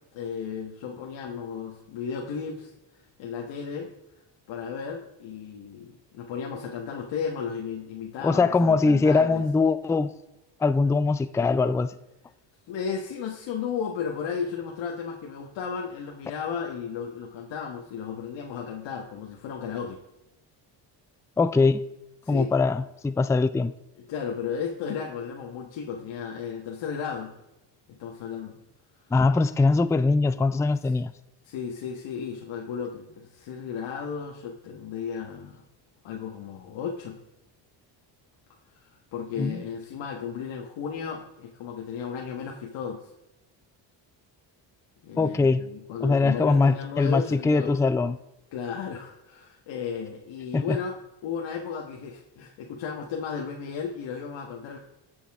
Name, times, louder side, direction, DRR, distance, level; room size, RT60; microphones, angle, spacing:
voice 1, 0.1-2.7 3.2-3.9 4.5-9.4 12.7-20.0 22.2-22.5 23.9-27.3 27.9-28.6 31.4-35.6 36.0-37.2 38.8-43.0 45.0-47.7 48.5-54.8, left 6 dB, 75° left, -1 dB, 1.5 m, -34 dB
voice 2, 8.2-10.1 10.6-11.9 21.4-21.8 22.3-23.7 29.1-31.1 39.4-39.6 45.2-45.6 46.0-48.2 50.5-50.8, left 3 dB, 5° left, 13 dB, 0.4 m, -22 dB
20.0 x 7.1 x 3.6 m, 0.94 s
cardioid pair, 85°, 45 cm